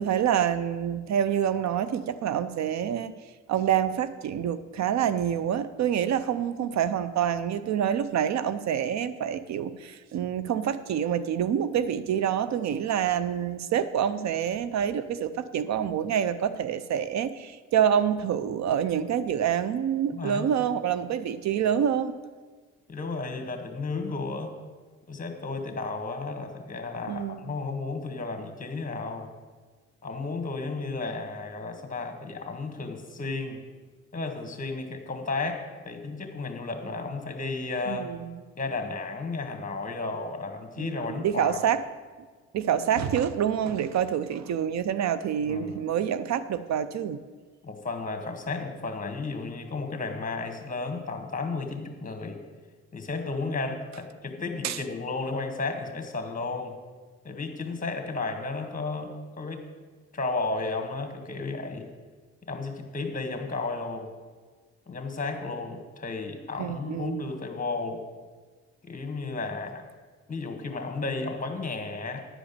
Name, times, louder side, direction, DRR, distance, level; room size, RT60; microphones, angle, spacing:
voice 1, 0.0-3.1 3.5-22.2 27.1-27.5 37.9-38.2 40.8-41.8 42.5-47.2 54.6-54.8 66.6-67.3, right 9 dB, 65° right, 13 dB, 0.6 m, -27 dB
voice 2, 20.1-20.5 22.9-24.5 25.1-29.3 30.0-33.6 34.1-38.1 38.6-41.6 45.5-45.8 47.6-52.4 52.9-56.7 57.2-59.6 60.1-61.9 62.5-64.1 64.9-68.0 68.8-69.8 70.3-72.2, left 3 dB, 25° left, 5 dB, 1.8 m, -33 dB
11.0 x 5.0 x 8.3 m, 1.4 s
cardioid pair, 90°, 30 cm